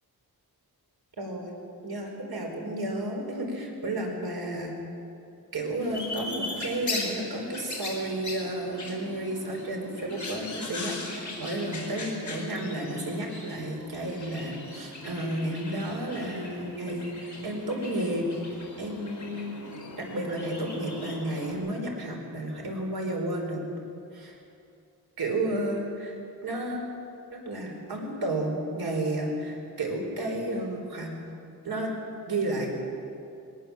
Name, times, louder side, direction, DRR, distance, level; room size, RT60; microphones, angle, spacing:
voice 1, 1.2-1.5 1.8-4.8 5.5-18.3 18.5-19.5 20.0-23.6 24.1-24.4 25.2-26.1 26.4-26.9 27.3-31.1 31.6-31.9 32.3-32.7, right 1 dB, 70° right, 1 dB, 4.7 m, -32 dB
sound 1, 5.8-21.5, left 2 dB, 50° left, 4.4 m, -39 dB
22.0 x 18.5 x 7.4 m, 2.6 s
wide cardioid pair, 115°, 38 cm